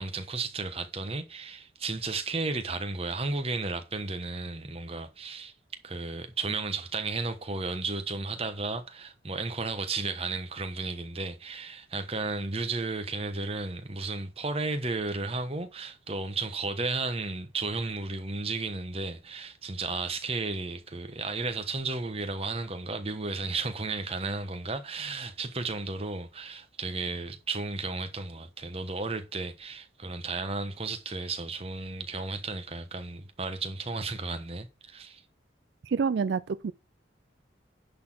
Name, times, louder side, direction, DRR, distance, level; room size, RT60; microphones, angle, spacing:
voice 1, 0.0-5.5 5.8-35.2, right 3 dB, 30° right, 1.1 m, -33 dB
voice 2, 35.8-36.7, right 5 dB, 65° right, 0.4 m, -27 dB
10.5 x 4.1 x 6.0 m
head